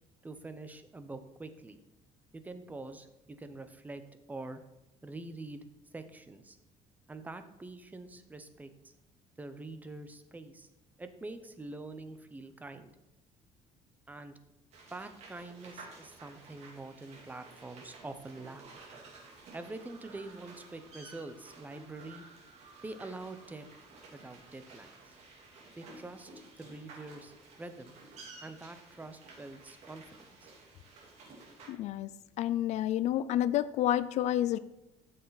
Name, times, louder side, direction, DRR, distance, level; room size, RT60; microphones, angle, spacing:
voice 1, 0.2-1.8 2.3-4.0 4.3-4.6 5.0-5.7 5.9-6.6 7.1-8.9 9.4-10.7 11.0-12.9 14.1-14.4 14.9-18.6 19.5-22.2 22.8-23.6 24.1-25.1 25.8-26.3 26.6-27.9 28.4-30.5, right 2 dB, 10° right, 9 dB, 0.6 m, -45 dB
sound 1, 14.7-31.7, right 3 dB, 55° right, 2.7 m, -53 dB
voice 2, 31.7-32.1 32.4-34.6, left 12 dB, 60° left, 16 dB, 0.4 m, -29 dB
12.5 x 6.5 x 4.0 m, 0.95 s
cardioid pair, 155°, 13 cm